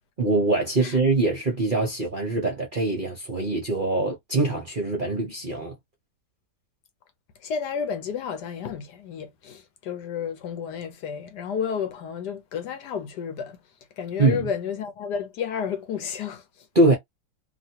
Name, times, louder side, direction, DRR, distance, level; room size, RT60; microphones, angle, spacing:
voice 1, 0.2-5.7 14.2-14.5 16.7-17.0, right 2 dB, 40° right, 0.7 m, -23 dB
voice 2, 7.4-13.6 14.0-16.7, left 7 dB, 70° left, 1.2 m, -31 dB
2.9 x 2.7 x 2.8 m
omnidirectional pair, 2.0 m